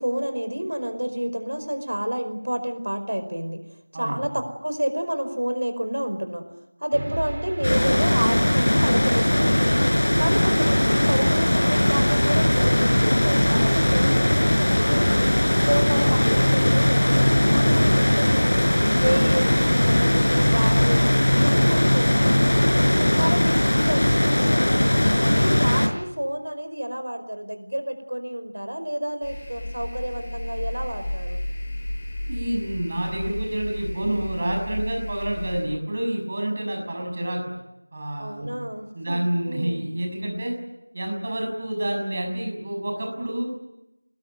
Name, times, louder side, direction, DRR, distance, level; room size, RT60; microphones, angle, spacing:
voice 1, 0.0-3.6 3.9-6.4 6.8-9.7 10.2-15.2 15.7-18.6 19.0-22.7 23.2-25.0 25.3-31.4 38.2-39.8, equal, 90° right, 8 dB, 4.9 m, -29 dB
sound 1, 6.9-20.9, right 1 dB, 55° right, 2.9 m, -33 dB
sound 2, 7.6-25.9, left 1 dB, 60° left, 5.8 m, -19 dB
sound 3, 29.2-35.6, left 1 dB, 15° left, 4.6 m, -33 dB
voice 2, 32.3-37.4 37.9-38.5 38.9-40.5 40.9-43.4, right 1 dB, 25° right, 1 dB, 6.5 m, -28 dB
26.5 x 21.0 x 9.3 m, 0.92 s
figure-of-eight pair, 175°, 0 cm